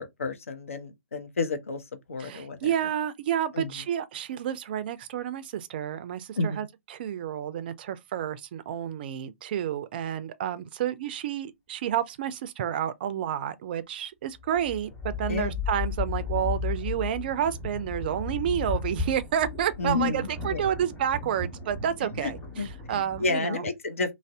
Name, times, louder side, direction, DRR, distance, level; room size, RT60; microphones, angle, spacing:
voice 1, 0.0-1.8 2.1-2.7 3.5-3.8 6.4-6.7 15.3-15.6 19.8-20.6 22.2-22.3 22.6-22.7 23.2-24.1, left 3 dB, 70° left, 0.6 m, -30 dB
voice 2, 2.2-23.6, right 10 dB, 45° right, 0.4 m, -30 dB
sound 1, 14.4-23.3, left 5 dB, 15° left, 1.2 m, -34 dB
2.6 x 2.0 x 3.3 m
figure-of-eight pair, 125°, 8 cm